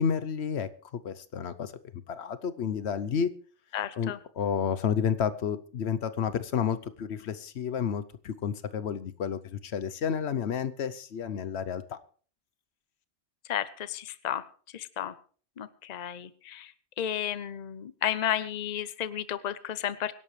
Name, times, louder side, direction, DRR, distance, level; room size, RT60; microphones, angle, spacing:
voice 1, 0.0-1.7 2.1-3.3 4.0-12.0, left 7 dB, 80° left, 14 dB, 1.1 m, -31 dB
voice 2, 3.7-4.2 13.5-14.4 14.7-15.1 15.6-16.7 17.0-20.1, left 10 dB, 45° left, 15 dB, 0.7 m, -32 dB
24.5 x 11.0 x 3.2 m, 0.43 s
omnidirectional pair, 1.1 m